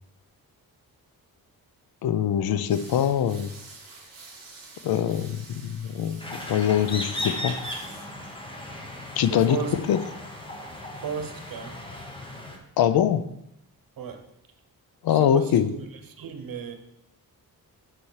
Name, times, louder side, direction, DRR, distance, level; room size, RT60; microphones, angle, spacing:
voice 1, 2.0-3.5 4.8-6.2 6.5-7.6 9.2-10.0 12.8-13.2 15.0-15.7, left 9 dB, 75° left, 0.6 m, -23 dB
sound 1, 2.7-8.1, right 3 dB, 40° right, 2.3 m, -48 dB
sound 2, 6.2-12.6, left 1 dB, 15° left, 1.1 m, -36 dB
voice 2, 9.3-9.8 11.0-11.8 14.0-14.2 15.1-15.9 16.2-16.8, right 6 dB, 65° right, 1.1 m, -34 dB
7.1 x 6.3 x 4.8 m
wide cardioid pair, 150°, 37 cm